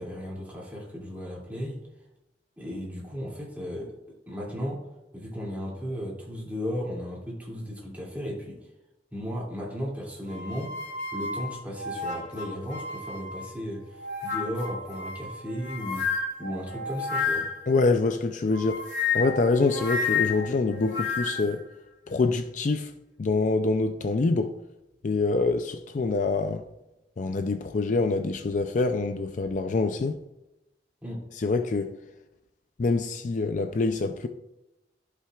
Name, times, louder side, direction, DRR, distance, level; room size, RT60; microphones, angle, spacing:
voice 1, 0.0-1.8 2.6-4.0 4.3-4.9 5.1-8.6 9.1-10.8 11.1-17.5 31.0-31.2, equal, 10° right, 2.5 m, -35 dB
sound 1, 10.3-13.5 14.0-17.7 18.5-21.6, left 5 dB, 80° left, 2.6 m, -31 dB
voice 2, 17.7-18.9 19.1-21.6 22.1-22.9 23.2-24.5 25.0-26.6 27.2-30.2 31.4-31.9 32.8-34.3, left 3 dB, 45° left, 0.4 m, -25 dB
14.5 x 5.7 x 2.4 m
head